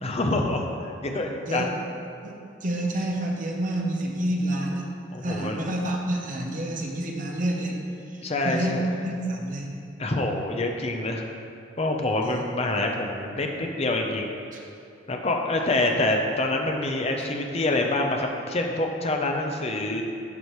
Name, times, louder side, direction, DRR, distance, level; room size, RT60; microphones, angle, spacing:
voice 1, 0.0-1.8 5.1-5.6 8.2-8.9 10.0-11.2 11.8-14.3 15.1-20.0, left 2 dB, 30° left, 2 dB, 0.6 m, -26 dB
voice 2, 2.6-4.9 5.2-7.8 8.1-8.8 9.0-9.7 12.3-12.4 14.5-14.6, right 1 dB, 40° right, 0 dB, 0.8 m, -28 dB
12.0 x 4.9 x 3.1 m, 2.5 s
head